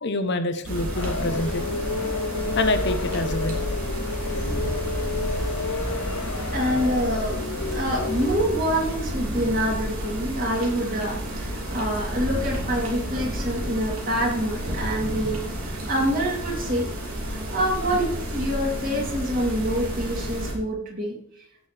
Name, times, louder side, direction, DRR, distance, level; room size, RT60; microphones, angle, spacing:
voice 1, 0.0-1.8 2.6-3.6, left 2 dB, 50° left, 8 dB, 0.9 m, -26 dB
sound 1, 0.6-20.5, equal, 65° right, 3.1 m, -30 dB
sound 2, 0.9-8.4, left 4 dB, 80° left, 0.7 m, -31 dB
voice 2, 6.5-15.4 15.6-16.9 17.3-21.5, equal, 40° right, -2 dB, 3.2 m, -26 dB
16.5 x 6.5 x 3.4 m, 0.65 s
head